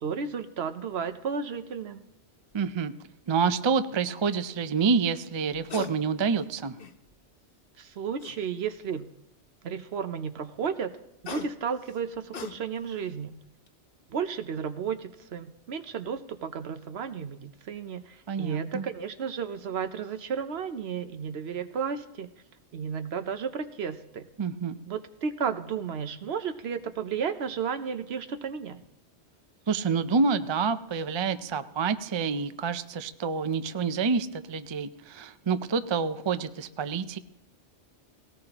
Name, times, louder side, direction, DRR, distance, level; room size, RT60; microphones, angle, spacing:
voice 1, 0.0-2.0 7.8-9.1 9.6-10.9 11.2-13.4 14.1-22.3 22.7-24.3 24.9-28.8, right 6 dB, 65° right, 9 dB, 1.0 m, -33 dB
sound 1, 2.5-2.7 5.4-5.9 6.4-7.2 8.2-8.9 10.9-13.0 13.4-13.7, left 6 dB, 55° left, 1.1 m, -41 dB
voice 2, 2.5-2.9 3.3-6.7 18.3-18.9 24.4-24.8 29.7-37.2, right 5 dB, 40° right, 11 dB, 0.4 m, -28 dB
18.5 x 18.0 x 2.9 m, 0.82 s
omnidirectional pair, 1.2 m